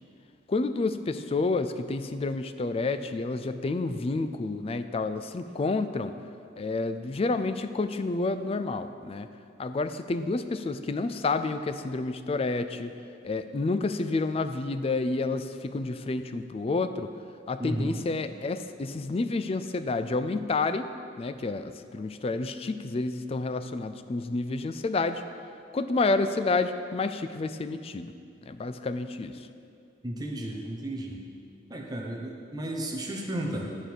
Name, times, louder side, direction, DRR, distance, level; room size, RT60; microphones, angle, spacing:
voice 1, 0.5-6.1 6.6-9.3 9.6-12.9 13.2-17.1 17.5-25.2 25.7-28.1 28.5-29.5, left 3 dB, 30° left, 10 dB, 0.4 m, -29 dB
voice 2, 17.6-18.0 30.0-31.2 31.7-33.7, right 1 dB, 20° right, -1 dB, 0.9 m, -33 dB
11.0 x 4.6 x 6.9 m, 2.4 s
head